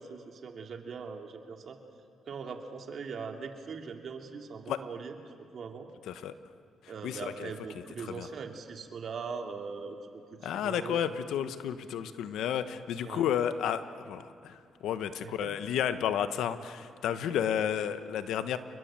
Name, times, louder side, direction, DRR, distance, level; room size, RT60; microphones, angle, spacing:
voice 1, 0.0-1.8 2.3-5.2 5.5-5.9 6.9-10.0 10.4-11.2 13.0-13.2 15.2-15.5, right 5 dB, 55° right, 4 dB, 2.8 m, -41 dB
voice 2, 7.0-7.5 8.0-8.3 10.4-18.6, left 9 dB, 80° left, 11 dB, 1.2 m, -32 dB
28.0 x 22.0 x 7.7 m, 2.3 s
cardioid pair, 90°, 0 cm